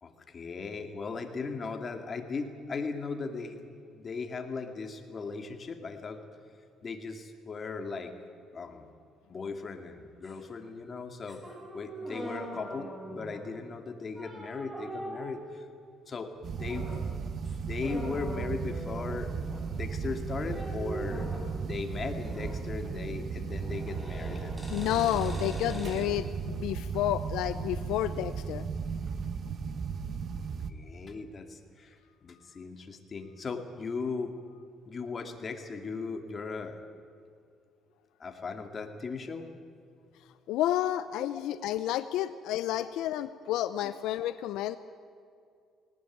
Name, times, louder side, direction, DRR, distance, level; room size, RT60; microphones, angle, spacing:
voice 1, 0.0-3.6 3.9-6.2 6.8-8.1 8.5-8.9 9.3-11.4 11.7-15.6 16.1-16.9 17.6-19.3 19.7-21.3 21.6-24.6 30.7-32.0 32.2-34.3 34.9-36.8 38.2-39.5 41.2-41.3 42.8-42.9, left 4 dB, 35° left, 5 dB, 2.4 m, -38 dB
sound 1, 10.2-10.4 11.3-13.5 14.2-15.5 16.5-17.1 17.4-17.6 17.8-19.7 20.5-21.6 22.1-22.6 22.9-26.1, right 1 dB, 5° right, 6.5 m, -42 dB
sound 2, 16.4-30.7, right 5 dB, 50° right, 1.1 m, -35 dB
voice 2, 24.7-28.7 40.5-44.8, left 13 dB, 85° left, 13 dB, 0.6 m, -30 dB
19.0 x 19.0 x 9.4 m, 2.4 s
cardioid pair, 110°, 0 cm